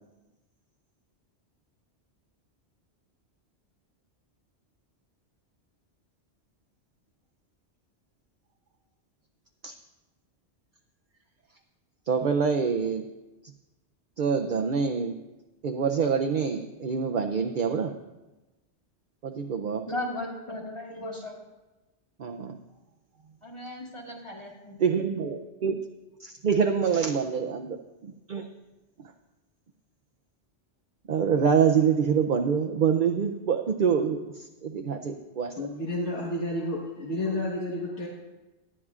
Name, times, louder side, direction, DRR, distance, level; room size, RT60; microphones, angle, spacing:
voice 1, 12.1-13.1 14.2-15.1 15.6-17.9 19.2-19.9 22.2-22.6 24.8-25.8 26.2-27.8 28.0-28.5 29.0-29.1 31.1-35.7, right 6 dB, 55° right, 4 dB, 0.7 m, -26 dB
voice 2, 19.9-21.4 23.4-24.9, left 1 dB, 25° left, -2 dB, 1.9 m, -36 dB
voice 3, 35.6-38.1, left 1 dB, 80° left, -4 dB, 1.7 m, -31 dB
18.5 x 11.0 x 2.4 m, 1.1 s
omnidirectional pair, 1.2 m